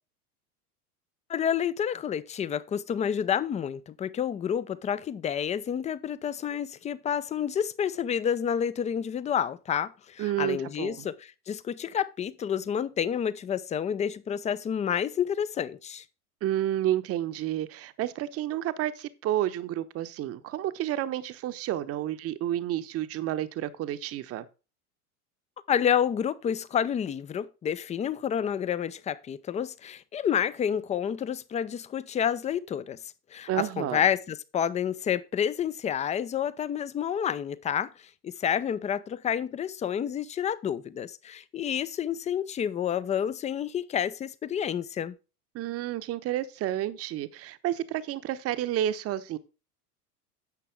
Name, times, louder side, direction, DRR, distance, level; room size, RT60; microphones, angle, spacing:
voice 1, 1.3-16.0 25.7-33.0 33.3-37.9 38.2-45.1, left 8 dB, 15° left, 0.6 m, -29 dB
voice 2, 10.2-11.1 16.4-24.5 33.5-34.1 45.5-49.4, right 12 dB, 30° right, 0.9 m, -30 dB
10.5 x 7.6 x 3.5 m
figure-of-eight pair, 85°, 46 cm